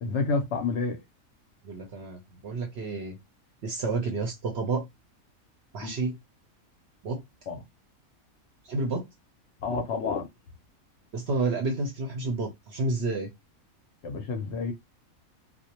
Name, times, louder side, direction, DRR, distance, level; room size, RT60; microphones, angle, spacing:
voice 1, 0.0-1.0 5.8-5.9 7.5-7.6 9.6-10.3 14.0-14.7, left 4 dB, 65° left, 0.7 m, -29 dB
voice 2, 1.6-3.2 3.6-4.9 5.7-6.2 7.0-7.2 8.7-9.1 11.1-13.3, right 3 dB, 60° right, 0.7 m, -30 dB
2.4 x 2.1 x 2.8 m
omnidirectional pair, 1.5 m